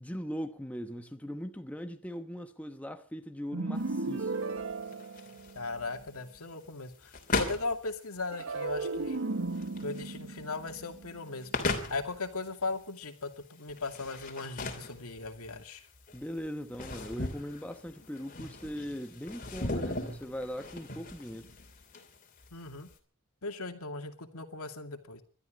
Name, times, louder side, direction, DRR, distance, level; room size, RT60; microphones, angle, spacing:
voice 1, 0.0-4.3 16.1-21.5, equal, 5° left, 1.0 m, -40 dB
sound 1, 3.5-5.9 8.3-11.6, right 3 dB, 65° right, 1.1 m, -36 dB
sound 2, 3.8-22.9, left 3 dB, 35° left, 2.8 m, -39 dB
voice 2, 5.6-9.2 9.8-15.8 22.5-22.9 23.4-25.2, left 3 dB, 80° left, 2.4 m, -38 dB
21.0 x 13.0 x 5.2 m
head